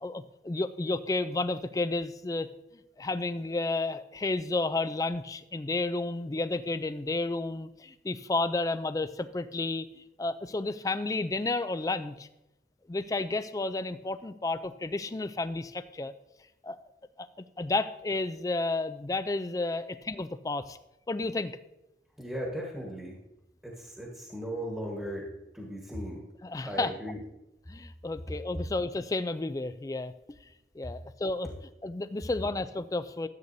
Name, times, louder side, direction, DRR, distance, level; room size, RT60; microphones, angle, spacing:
voice 1, 0.0-2.5 3.0-12.3 12.9-16.1 16.6-16.8 17.2-17.3 17.6-20.8 21.1-21.5 26.4-26.9 27.7-30.1 30.8-31.5 31.8-33.3, left 2 dB, 20° left, 12 dB, 0.3 m, -31 dB
voice 2, 22.2-23.2 23.6-26.2 26.6-27.3, equal, 5° right, -3 dB, 1.3 m, -37 dB
13.5 x 8.1 x 2.7 m, 0.91 s
head